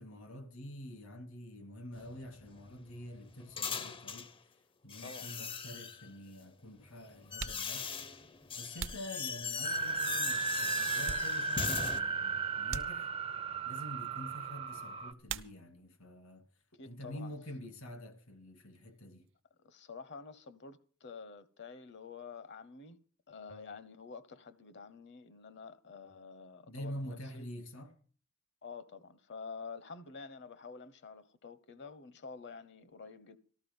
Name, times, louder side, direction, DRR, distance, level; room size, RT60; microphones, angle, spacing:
voice 1, 0.0-4.3 4.8-7.9 8.5-13.1 13.7-16.4 16.9-19.2 26.7-28.0, left 1 dB, 80° left, 2.6 m, -47 dB
sound 1, 1.9-4.3 4.9-6.1 6.8-12.0, left 5 dB, 25° left, 0.6 m, -40 dB
voice 2, 5.0-5.3 16.8-17.3 19.6-23.0 23.3-27.5 28.6-33.4, left 5 dB, 55° left, 1.0 m, -49 dB
sound 2, 6.6-6.7 7.2-9.9 10.4-11.8 12.1-12.2 12.7-13.5 15.2-16.0 16.3-17.0 17.2-19.4, right 6 dB, 65° right, 0.8 m, -46 dB
sound 3, 9.6-15.1, right 4 dB, 25° right, 0.6 m, -35 dB
14.0 x 13.0 x 5.4 m
head